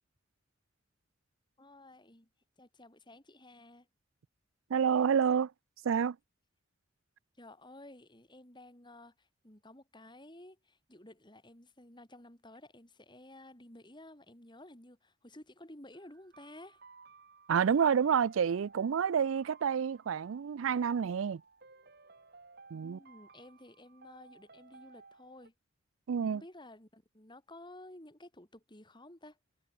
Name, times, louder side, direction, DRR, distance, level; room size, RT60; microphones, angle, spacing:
voice 1, 1.6-2.3 2.6-3.9 7.4-16.8 22.7-25.5 26.3-29.4, left 1 dB, 25° left, 4.3 m, -53 dB
voice 2, 4.7-5.5 5.8-6.2 17.5-21.4 22.7-23.0 26.1-26.4, right 7 dB, 90° right, 0.4 m, -28 dB
sound 1, 15.9-25.5, right 4 dB, 55° right, 2.5 m, -58 dB
head